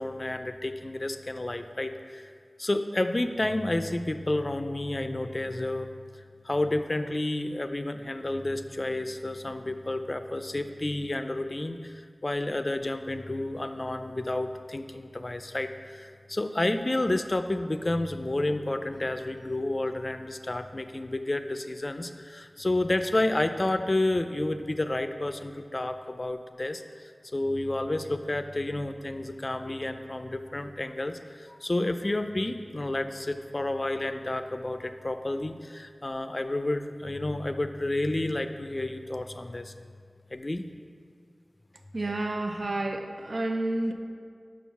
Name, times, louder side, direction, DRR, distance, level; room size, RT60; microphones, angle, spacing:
voice 1, 0.0-2.3 2.6-5.9 6.4-39.7 40.3-40.7, left 1 dB, 45° left, 9 dB, 0.4 m, -30 dB
voice 2, 41.9-43.9, right 2 dB, 70° right, 5 dB, 0.5 m, -30 dB
5.9 x 4.6 x 5.6 m, 2.2 s
wide cardioid pair, 45°, 0 cm